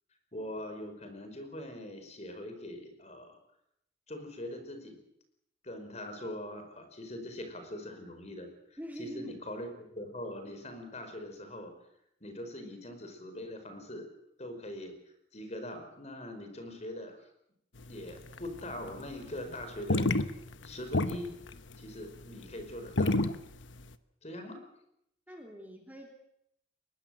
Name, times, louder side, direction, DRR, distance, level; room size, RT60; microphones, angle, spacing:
voice 1, 0.3-3.4 4.1-5.0 5.6-11.7 12.2-14.0 14.4-14.9 15.3-17.2 17.8-20.1 20.6-21.4 21.8-23.2 24.2-24.6, left 1 dB, 35° left, 7 dB, 4.9 m, -42 dB
voice 2, 8.8-9.4 25.3-26.1, equal, 10° right, 2 dB, 2.9 m, -44 dB
sound 1, 17.8-19.0 19.3-23.9, left 2 dB, 85° left, 1.1 m, -29 dB
23.0 x 21.0 x 7.7 m, 0.75 s
head